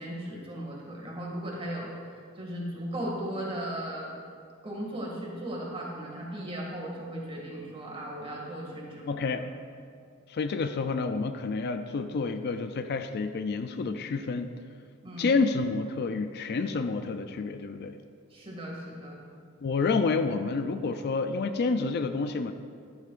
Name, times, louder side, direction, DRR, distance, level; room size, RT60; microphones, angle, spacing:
voice 1, 0.0-4.1 4.6-9.2 15.0-15.3 18.3-19.2, right 1 dB, 25° right, -3 dB, 2.1 m, -37 dB
voice 2, 9.1-9.4 10.3-14.5 15.2-18.0 19.6-22.5, left 4 dB, 50° left, 8 dB, 0.4 m, -29 dB
12.0 x 11.5 x 2.5 m, 2.2 s
head